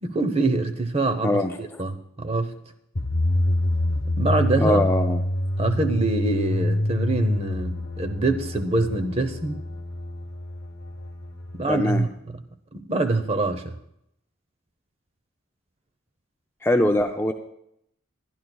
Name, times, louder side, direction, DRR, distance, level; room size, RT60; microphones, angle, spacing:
voice 1, 0.0-2.6 4.2-4.8 5.6-9.6 11.5-12.4 12.9-13.7, right 2 dB, 30° right, 0.8 m, -25 dB
voice 2, 1.2-1.8 4.6-5.2 11.7-12.1 16.6-17.3, left 1 dB, 10° left, 0.4 m, -22 dB
sound 1, 3.0-11.8, left 1 dB, 50° left, 1.1 m, -26 dB
22.5 x 11.0 x 2.3 m
head